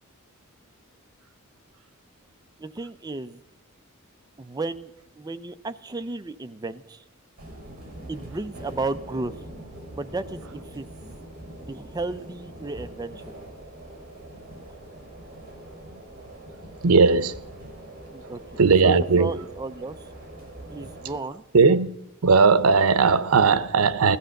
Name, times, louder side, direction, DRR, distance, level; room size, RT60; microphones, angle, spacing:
voice 1, 2.6-3.4 4.4-7.0 8.1-9.4 9.9-10.9 11.7-13.3 18.1-18.4 18.8-20.0 20.7-21.4, right 3 dB, 20° right, 0.5 m, -33 dB
sound 1, 7.4-21.2, right 1 dB, 45° right, 4.9 m, -43 dB
voice 2, 16.8-17.4 18.6-19.3 21.5-21.9 22.2-24.2, right 4 dB, 90° right, 0.7 m, -18 dB
16.0 x 12.5 x 6.4 m
head